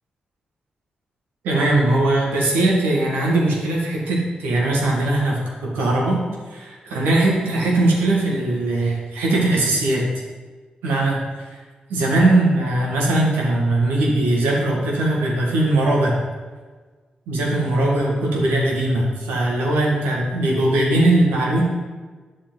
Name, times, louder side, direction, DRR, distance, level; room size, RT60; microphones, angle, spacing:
voice 1, 1.4-10.1 10.8-11.5 11.9-16.2 17.3-21.6, right 2 dB, 85° right, -3 dB, 1.7 m, -20 dB
8.5 x 6.7 x 3.9 m, 1.4 s
supercardioid pair, 40°, 3 cm